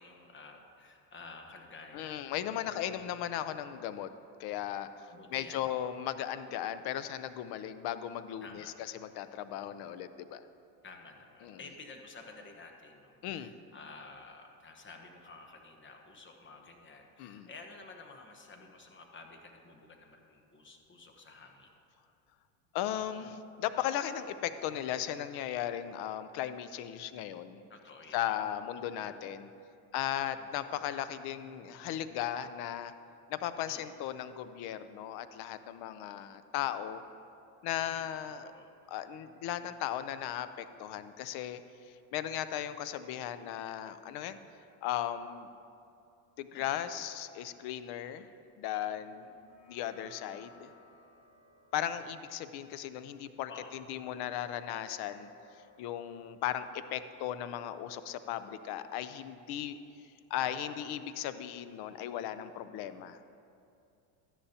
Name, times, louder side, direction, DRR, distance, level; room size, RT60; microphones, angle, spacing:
voice 1, 0.0-2.3 2.6-2.9 5.1-5.7 8.4-8.7 10.8-21.7 27.7-28.2 28.8-29.1 30.2-30.5 33.7-33.8 37.9-38.0 38.4-38.7 46.5-46.7 53.5-53.8 60.4-60.8, left 3 dB, 25° left, 4 dB, 1.1 m, -51 dB
voice 2, 1.9-4.1 4.4-8.6 8.9-10.4 11.4-11.6 13.2-13.5 17.2-17.5 22.7-27.6 28.1-29.5 29.9-32.9 33.3-37.0 37.6-38.4 38.9-44.4 44.8-45.5 46.4-48.3 48.6-49.3 49.7-50.7 51.7-55.3 55.8-59.8 60.3-63.2, left 11 dB, 55° left, 12 dB, 0.6 m, -37 dB
sound 1, 49.2-57.9, left 4 dB, 85° left, 2.0 m, -62 dB
13.0 x 10.0 x 2.8 m, 2.6 s
supercardioid pair, 110°, 47 cm